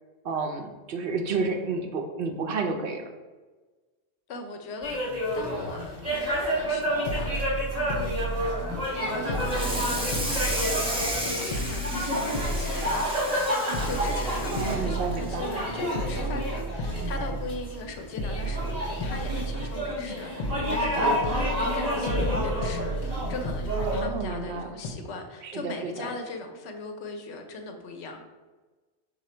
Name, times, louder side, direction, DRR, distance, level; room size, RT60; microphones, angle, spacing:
voice 1, 0.2-3.1 14.5-15.5 23.9-24.7 25.4-26.1, right 4 dB, 65° right, 4 dB, 0.7 m, -31 dB
voice 2, 4.3-5.0 5.3-7.4 7.9-8.3 9.0-13.0 13.8-28.2, left 3 dB, 80° left, 4 dB, 0.9 m, -39 dB
sound 1, 4.8-24.0, equal, 35° right, 1.4 m, -30 dB
sound 2, 6.6-6.7 7.1-9.0 9.3-11.2 11.5-13.4 13.7-15.6 15.9-17.8 18.2-20.1 20.4-24.5 24.8-24.9, right 1 dB, 55° left, 0.6 m, -33 dB
Water tap faucet / Sink (filling or washing), 9.3-16.0 16.4-16.6 17.0-17.1 17.5-17.6 18.7-18.8 19.3-19.5, equal, 5° right, 0.6 m, -34 dB
4.8 x 2.4 x 4.3 m, 1.3 s
omnidirectional pair, 1.1 m